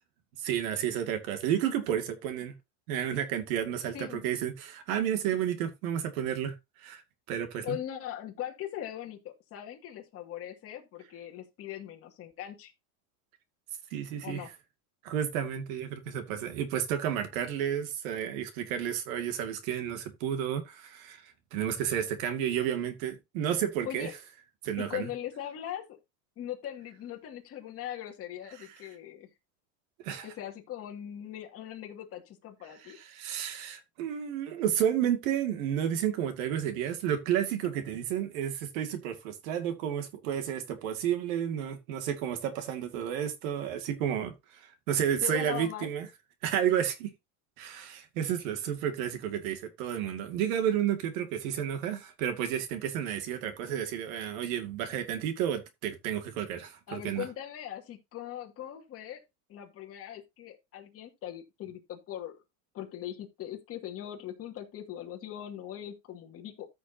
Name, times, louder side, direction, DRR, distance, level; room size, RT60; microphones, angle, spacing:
voice 1, 0.4-2.5 2.9-7.0 7.3-7.8 13.9-14.4 15.0-24.1 24.6-25.1 30.0-30.3 33.0-46.1 46.4-47.1 47.6-57.3, right 9 dB, 65° right, 2.3 m, -31 dB
voice 2, 7.6-12.7 14.2-14.5 23.8-24.1 24.8-26.0 26.4-29.3 30.2-33.0 45.2-45.9 56.9-59.2 59.5-62.4 62.7-66.7, left 11 dB, 30° left, 2.4 m, -40 dB
14.0 x 6.3 x 2.8 m
supercardioid pair, 155°, 45 cm